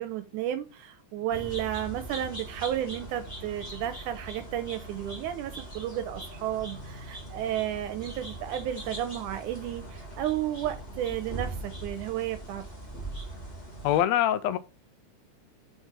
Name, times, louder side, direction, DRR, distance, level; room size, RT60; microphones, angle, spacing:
voice 1, 0.0-12.6, right 11 dB, 80° right, 2.1 m, -33 dB
sound 1, 1.3-14.0, right 2 dB, 15° left, 2.0 m, -41 dB
voice 2, 13.8-14.6, left 12 dB, 85° left, 1.6 m, -24 dB
5.1 x 4.6 x 5.9 m
omnidirectional pair, 3.6 m